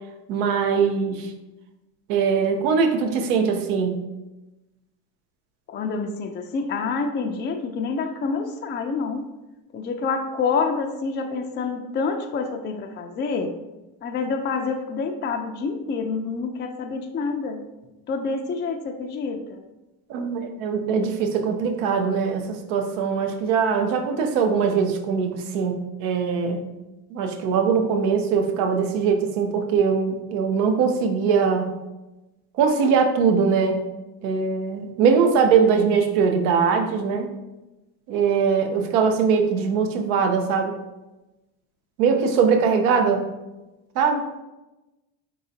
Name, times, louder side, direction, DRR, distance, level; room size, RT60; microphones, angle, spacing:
voice 1, 0.3-1.3 2.1-4.0 20.1-26.6 27.1-31.7 32.6-33.8 34.2-37.3 38.1-40.8 42.0-43.3 44.0-44.2, right 6 dB, 80° right, 5 dB, 0.7 m, -21 dB
voice 2, 5.7-9.3 9.7-13.5 14.0-17.6 18.1-19.6, left 4 dB, 25° left, 4 dB, 0.4 m, -27 dB
4.1 x 3.8 x 2.7 m, 1.0 s
supercardioid pair, 80°, 46 cm